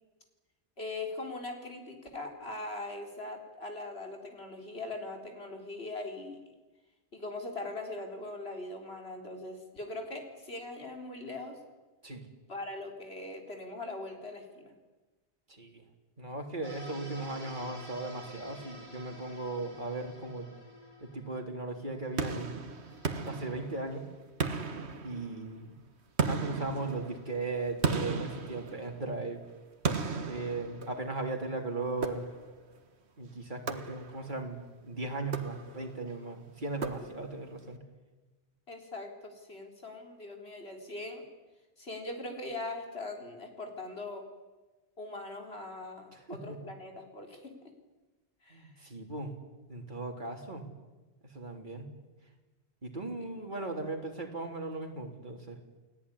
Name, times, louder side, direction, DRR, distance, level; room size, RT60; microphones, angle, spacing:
voice 1, 0.8-6.4 7.1-11.6 12.5-14.7 38.7-41.2 41.8-44.2 45.0-47.5 48.4-48.7 53.6-53.7, left 2 dB, 65° left, 3 dB, 4.1 m, -41 dB
voice 2, 16.2-20.5 21.0-22.5 23.3-24.1 25.0-25.7 26.3-29.4 30.3-32.3 33.2-37.8 46.1-46.6 48.5-49.3 49.7-50.7 51.3-51.9 52.8-55.6, right 3 dB, 45° right, 2 dB, 3.6 m, -37 dB
sound 1, 16.6-23.5, equal, 25° right, 7.7 m, -50 dB
sound 2, 22.2-24.0 24.4-25.6 26.2-29.2 29.8-31.3 32.0-32.7 33.7-34.4 35.2-36.0 36.8-37.5, right 5 dB, 75° right, 1.8 m, -35 dB
29.5 x 18.0 x 9.9 m, 1.2 s
omnidirectional pair, 1.1 m